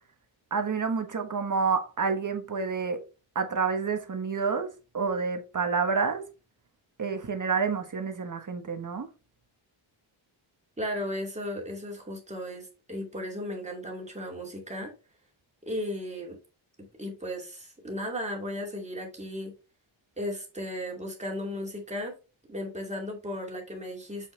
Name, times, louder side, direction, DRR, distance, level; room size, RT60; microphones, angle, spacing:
voice 1, 0.5-3.0 3.3-6.2 7.0-9.1, right 5 dB, 40° right, 1.3 m, -29 dB
voice 2, 10.8-14.9 15.7-16.4 17.0-19.5 20.2-22.2 22.5-24.3, left 1 dB, 15° right, 2.6 m, -35 dB
7.4 x 6.2 x 3.3 m
wide cardioid pair, 160°, 48 cm